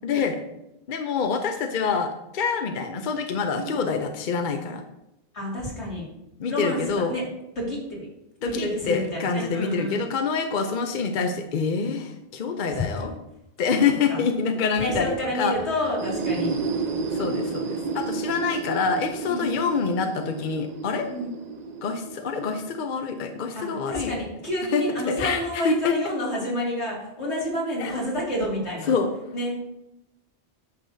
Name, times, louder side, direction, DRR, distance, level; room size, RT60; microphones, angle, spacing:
voice 1, 0.0-0.4 0.9-4.8 6.4-7.2 8.4-13.1 13.6-15.5 17.1-21.1 21.8-24.1 24.7-25.9 27.8-28.0 28.9-29.1, left 5 dB, 50° left, 6 dB, 0.7 m, -26 dB
voice 2, 5.3-6.1 6.5-7.2 7.6-8.1 8.4-10.0 12.7-12.9 14.1-14.2 14.8-16.6 19.3-19.7 21.1-21.3 23.5-28.9 29.3-29.5, left 1 dB, 70° left, -5 dB, 2.7 m, -29 dB
sound 1, 15.8-23.5, right 4 dB, 50° right, 0.6 m, -31 dB
9.3 x 6.6 x 2.7 m, 0.88 s
omnidirectional pair, 1.2 m